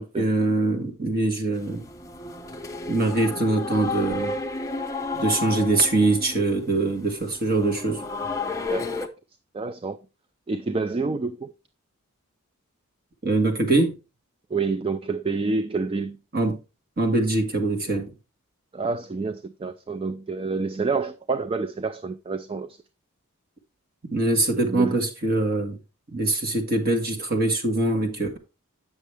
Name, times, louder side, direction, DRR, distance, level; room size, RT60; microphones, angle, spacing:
voice 1, 0.0-1.8 2.9-4.4 5.1-8.0 13.2-13.9 16.3-16.6 17.0-18.1 24.1-25.8 26.1-28.4, right 2 dB, 40° right, 1.5 m, -23 dB
sound 1, 1.5-9.1, left 3 dB, 15° left, 0.7 m, -32 dB
voice 2, 9.5-10.0 10.5-11.5 14.5-16.2 18.7-22.7 24.6-25.0, right 4 dB, 25° right, 0.3 m, -28 dB
8.3 x 6.3 x 3.3 m
head